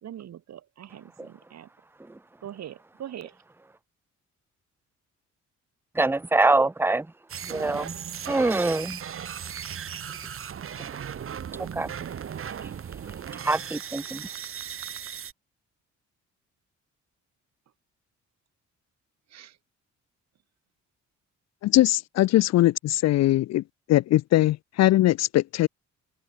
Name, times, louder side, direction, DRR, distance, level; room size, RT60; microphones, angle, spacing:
voice 1, 0.0-1.7 2.4-3.3 19.3-19.5, right 10 dB, 60° right, 1.7 m, -42 dB
voice 2, 5.9-7.1 7.4-7.9 8.3-9.0 10.8-10.9 11.6-11.9 12.6-12.7 13.4-14.2, right 2 dB, 5° right, 0.9 m, -24 dB
sound 1, 7.3-15.3, right 8 dB, 45° right, 1.4 m, -37 dB
voice 3, 21.6-23.6 23.9-25.7, left 15 dB, 60° left, 0.4 m, -21 dB
cardioid pair, 90°, 30 cm